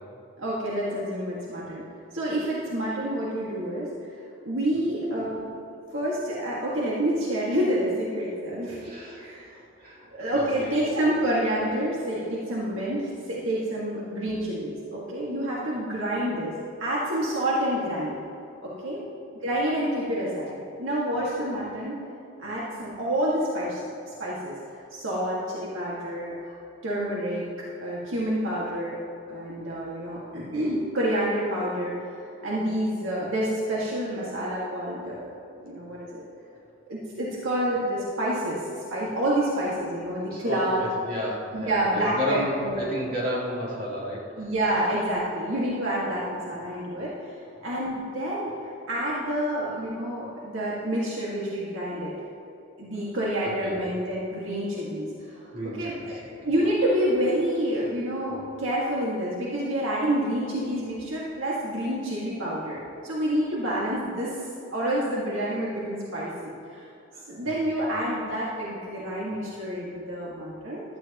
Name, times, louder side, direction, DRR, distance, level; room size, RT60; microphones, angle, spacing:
voice 1, 0.4-1.8 2.1-3.9 4.4-5.5 5.9-8.8 9.2-9.5 10.1-16.5 16.8-18.2 18.6-19.0 19.4-22.0 22.4-23.8 24.2-24.6 24.9-26.6 26.8-27.5 27.8-29.0 29.3-32.0 32.4-35.3 35.6-36.2 36.9-40.9 41.5-42.8 44.4-47.3 47.6-52.1 52.8-55.1 55.6-64.4 64.7-66.9 67.3-70.8, right 1 dB, 70° right, -6 dB, 2.0 m, -28 dB
voice 2, 8.8-9.3 9.5-10.8 40.3-44.2 53.4-53.8 55.5-56.3 67.4-67.6, equal, 45° right, -6 dB, 3.4 m, -33 dB
16.0 x 13.0 x 3.0 m, 2.7 s
head